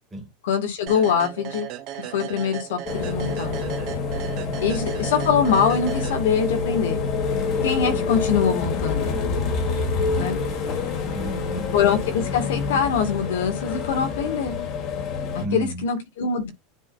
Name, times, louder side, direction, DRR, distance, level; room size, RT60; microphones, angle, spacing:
voice 1, 0.4-1.7 2.0-3.8 4.6-7.0 7.6-9.2 10.2-10.4 11.7-14.6 15.3-16.5, left 7 dB, 85° left, 2.1 m, -23 dB
sound 1, 0.9-6.7, right 11 dB, 50° right, 1.4 m, -36 dB
sound 2, 2.8-15.5, left 4 dB, 45° left, 1.9 m, -27 dB
voice 2, 4.2-4.6 7.9-8.0 10.3-10.8 11.1-11.7 15.4-15.9, right 1 dB, 10° right, 2.0 m, -34 dB
9.8 x 3.7 x 2.6 m
supercardioid pair, 135°, 0 cm